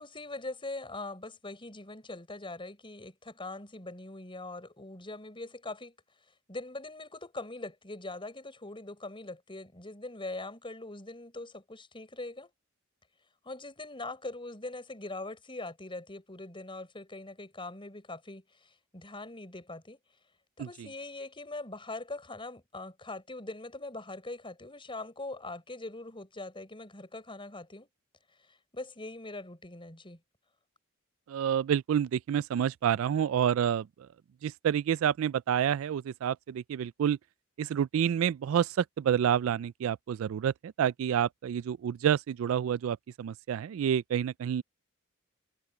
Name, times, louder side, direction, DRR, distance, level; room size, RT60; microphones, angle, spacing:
voice 1, 0.0-5.9 6.5-12.5 13.4-20.0 20.6-27.9 28.7-30.2, left 2 dB, 25° left, 5.9 m, -42 dB
voice 2, 31.3-33.9 34.4-37.2 37.6-40.5 40.8-44.6, right 9 dB, 70° right, 0.3 m, -28 dB
head